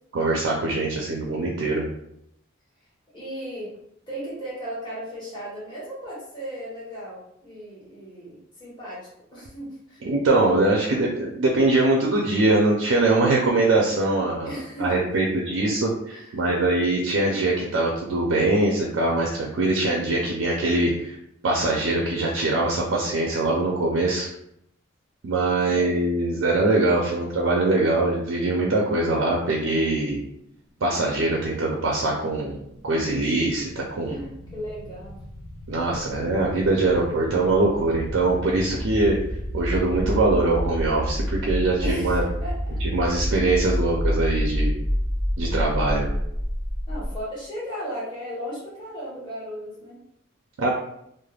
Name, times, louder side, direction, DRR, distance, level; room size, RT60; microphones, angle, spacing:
voice 1, 0.1-1.9 10.0-14.5 14.8-21.1 21.4-24.3 25.2-30.2 30.8-32.6 32.8-34.2 35.7-39.2 39.5-42.2 42.8-44.7 45.4-46.1 50.6-50.7, right 2 dB, 65° right, -1 dB, 0.4 m, -22 dB
voice 2, 3.1-3.7 4.1-10.0 14.4-14.9 16.1-16.5 25.6-25.9 34.0-35.2 41.8-42.8 46.9-50.0, equal, 25° left, -8 dB, 1.2 m, -36 dB
sound 1, 32.6-47.2, equal, ahead, 0.8 m, -29 dB
3.2 x 2.0 x 2.3 m, 0.75 s
head